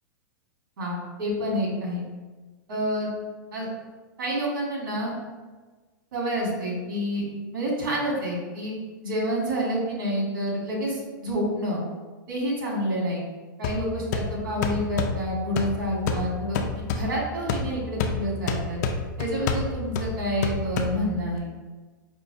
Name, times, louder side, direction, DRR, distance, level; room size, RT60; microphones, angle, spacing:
voice 1, 0.8-2.0 2.7-3.1 3.5-3.7 4.2-5.1 6.1-7.2 7.5-8.7 9.0-11.8 12.3-13.2 13.6-18.8 19.2-21.5, equal, 75° right, -3 dB, 1.4 m, -28 dB
sound 1, 13.6-21.4, left 4 dB, 55° left, 0.4 m, -30 dB
5.1 x 2.0 x 2.7 m, 1.3 s
hypercardioid pair, 130°, 11 cm